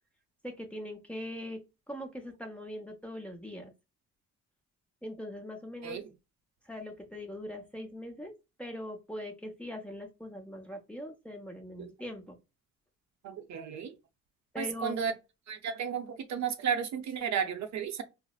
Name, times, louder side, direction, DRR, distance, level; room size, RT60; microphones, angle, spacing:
voice 1, 0.4-1.6 1.9-3.7 5.0-6.0 6.6-8.3 8.6-12.4 14.5-15.2, left 1 dB, 5° left, 0.8 m, -41 dB
voice 2, 13.2-14.0 14.6-15.1 15.5-18.0, right 7 dB, 65° right, 0.7 m, -33 dB
4.0 x 2.0 x 2.3 m
cardioid pair, 90°, 30 cm